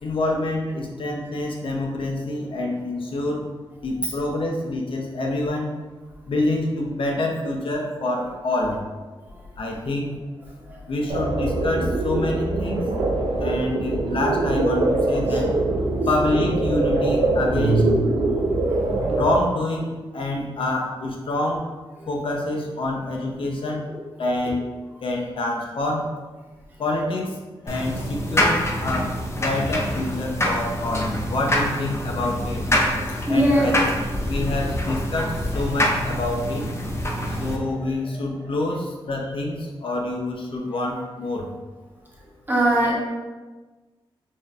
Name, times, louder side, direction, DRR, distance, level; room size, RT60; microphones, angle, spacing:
voice 1, 0.0-3.5 3.8-5.7 6.3-8.8 9.6-10.2 10.9-12.9 13.4-15.5 16.1-17.9 19.1-21.7 22.1-23.9 24.2-24.7 25.0-26.1 26.8-27.4 27.6-32.6 33.3-33.7 34.2-36.6 37.3-41.5, left 2 dB, 65° left, 0 dB, 0.7 m, -26 dB
sound 1, 11.1-19.4, right 2 dB, 85° right, 0.6 m, -23 dB
sound 2, 27.7-37.6, equal, 30° left, 0.6 m, -25 dB
voice 2, 33.3-33.7 37.1-37.6 42.5-43.0, right 1 dB, 20° right, -4 dB, 1.1 m, -22 dB
4.9 x 2.7 x 2.5 m, 1.3 s
wide cardioid pair, 85°, 10 cm